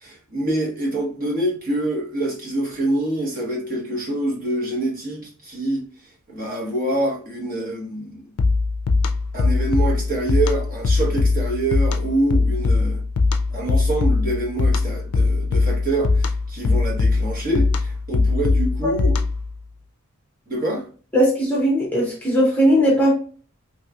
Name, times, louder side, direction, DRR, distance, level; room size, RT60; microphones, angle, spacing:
voice 1, 0.0-5.8 6.3-8.2 9.3-13.0 13.5-19.2 20.5-20.9, right 1 dB, 40° right, 1.1 m, -25 dB
sound 1, 8.4-19.5, left 3 dB, 90° left, 0.4 m, -21 dB
voice 2, 21.1-23.1, equal, 10° left, 0.7 m, -18 dB
3.0 x 2.9 x 2.3 m
head